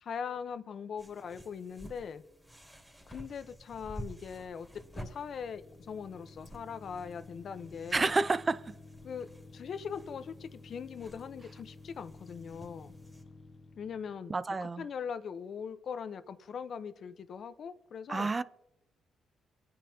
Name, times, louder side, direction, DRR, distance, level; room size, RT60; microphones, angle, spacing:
voice 1, 0.0-2.2 3.1-4.7 4.9-8.1 9.0-12.9 13.8-14.3 14.6-18.3, left 6 dB, 55° left, 0.9 m, -41 dB
sound 1, 1.0-13.2, equal, ahead, 2.9 m, -51 dB
sound 2, 4.5-14.2, left 2 dB, 40° left, 1.3 m, -53 dB
voice 2, 7.9-8.8 14.3-14.9 18.1-18.4, right 3 dB, 25° right, 0.5 m, -29 dB
26.5 x 9.4 x 2.9 m
cardioid pair, 90°, 0 cm